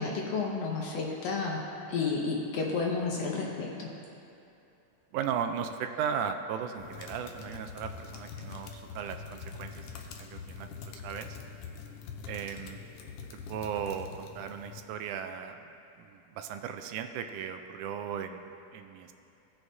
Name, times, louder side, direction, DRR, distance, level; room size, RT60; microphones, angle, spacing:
voice 1, 0.0-1.6 1.9-3.9, left 4 dB, 65° left, -1 dB, 1.8 m, -31 dB
voice 2, 5.1-11.4 12.2-12.8 13.5-15.7 16.0-19.1, right 8 dB, 85° right, 7 dB, 2.0 m, -37 dB
sound 1, 6.8-14.8, left 6 dB, 85° left, 1.3 m, -44 dB
17.5 x 6.3 x 2.6 m, 2.7 s
omnidirectional pair, 3.5 m